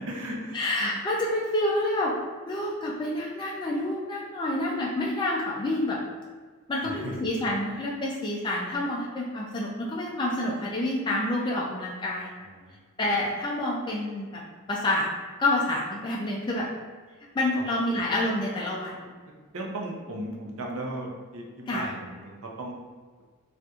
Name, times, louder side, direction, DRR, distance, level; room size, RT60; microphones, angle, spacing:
voice 1, 0.0-0.9 6.8-7.2 12.4-12.7 17.5-17.6 19.5-22.3 22.6-22.8, right 1 dB, 65° right, -1 dB, 0.6 m, -36 dB
voice 2, 0.5-2.1 2.5-6.0 6.7-12.3 13.0-14.4 14.7-15.1 15.4-16.7 17.3-19.0 21.7-21.9, left 1 dB, 20° left, -4 dB, 0.3 m, -28 dB
4.1 x 2.5 x 2.3 m, 1.5 s
head